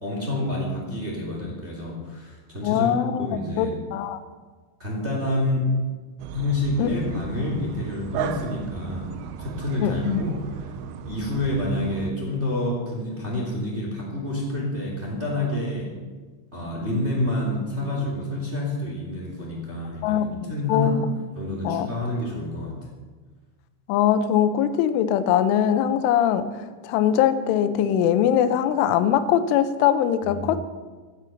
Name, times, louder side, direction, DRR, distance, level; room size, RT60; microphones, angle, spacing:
voice 1, 0.0-2.9 3.2-3.8 4.8-5.7 6.3-9.1 9.4-10.3 11.0-15.9 16.5-20.2 20.5-21.0 21.4-22.8 30.2-30.6, left 1 dB, 20° right, -2 dB, 2.4 m, -28 dB
voice 2, 2.6-3.3 3.6-4.2 6.8-6.9 9.8-10.2 20.0-21.0 21.6-21.9 23.9-26.5 26.8-30.6, left 9 dB, 90° left, 11 dB, 3.3 m, -22 dB
sound 1, 6.2-12.1, right 8 dB, 85° right, 2.1 m, -35 dB
15.5 x 10.5 x 6.4 m, 1.4 s
omnidirectional pair, 5.5 m